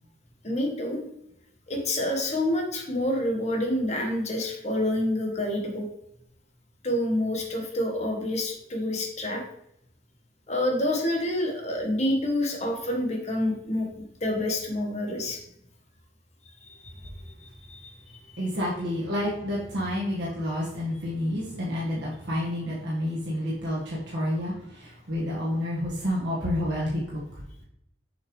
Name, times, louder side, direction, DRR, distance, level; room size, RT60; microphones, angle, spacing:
voice 1, 0.4-1.0 1.7-5.8 6.8-9.4 10.5-15.4 16.7-16.8 17.7-17.9, left 1 dB, 35° left, 2 dB, 1.4 m, -27 dB
voice 2, 18.4-27.2, left 1 dB, 60° right, -6 dB, 1.5 m, -29 dB
6.8 x 5.7 x 3.1 m, 0.75 s
head